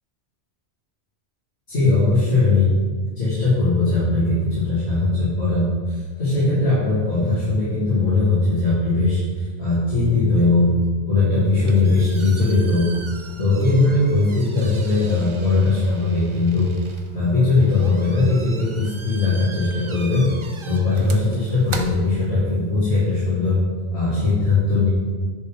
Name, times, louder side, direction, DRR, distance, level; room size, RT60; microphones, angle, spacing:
voice 1, 1.7-2.7 3.2-10.7 11.1-12.8 13.4-16.7 17.1-20.3 20.6-23.6 23.9-24.9, left 3 dB, 65° left, -12 dB, 2.7 m, -19 dB
sound 1, 11.3-22.8, right 4 dB, 40° right, 0.5 m, -40 dB
10.0 x 5.4 x 3.7 m, 1.5 s
omnidirectional pair, 1.2 m